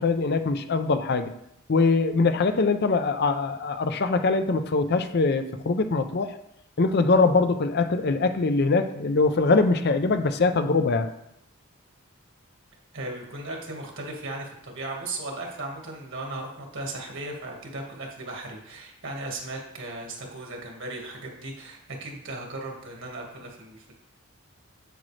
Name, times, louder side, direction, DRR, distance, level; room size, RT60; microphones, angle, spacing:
voice 1, 0.0-1.3 1.7-6.4 6.8-11.1, left 3 dB, 50° left, 9 dB, 0.5 m, -23 dB
voice 2, 12.9-23.9, right 2 dB, 60° right, 1 dB, 1.8 m, -36 dB
7.9 x 7.4 x 3.3 m, 0.78 s
head